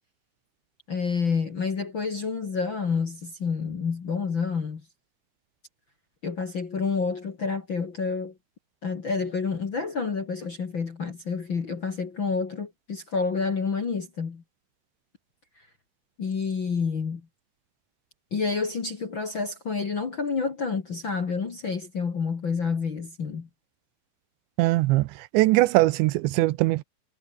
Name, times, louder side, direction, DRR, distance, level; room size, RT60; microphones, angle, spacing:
voice 1, 0.9-4.8 6.2-8.3 8.8-14.4 16.2-17.2 18.3-23.5, left 5 dB, 40° left, 1.7 m, -29 dB
voice 2, 24.6-26.8, right 19 dB, 90° right, 3.1 m, -21 dB
omnidirectional pair, 5.2 m